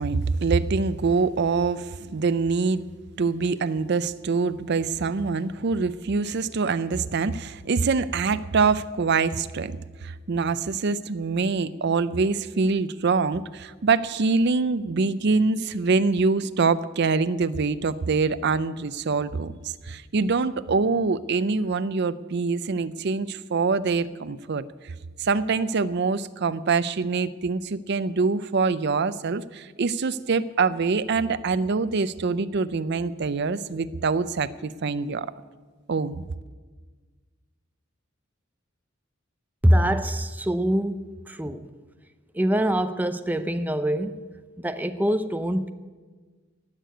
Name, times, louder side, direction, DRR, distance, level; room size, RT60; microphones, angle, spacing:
voice 1, 0.0-2.9 3.2-9.8 10.0-24.9 25.2-35.3 35.9-36.2, right 4 dB, 55° right, 14 dB, 0.5 m, -24 dB
voice 2, 39.6-41.7 42.3-44.3 44.6-45.7, equal, 10° right, 9 dB, 0.6 m, -24 dB
18.0 x 6.7 x 9.3 m, 1.4 s
head